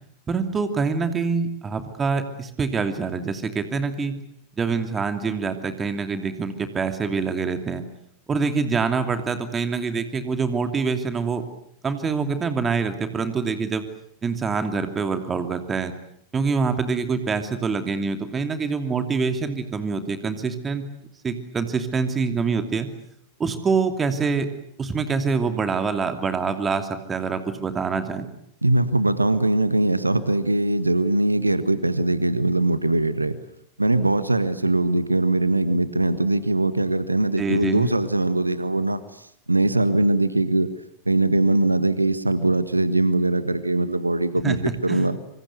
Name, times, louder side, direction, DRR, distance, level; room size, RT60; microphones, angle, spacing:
voice 1, 0.3-4.2 4.6-7.8 8.3-11.4 11.8-13.8 14.2-15.9 16.3-20.9 21.2-22.9 23.4-24.5 24.8-28.3 37.4-37.9 44.4-45.1, right 5 dB, 20° right, 8 dB, 2.8 m, -25 dB
voice 2, 28.6-33.4 33.8-39.0 39.5-40.7 41.0-45.2, right 2 dB, 85° right, 14 dB, 1.5 m, -21 dB
25.5 x 24.5 x 8.1 m, 0.69 s
figure-of-eight pair, 90°, 0 cm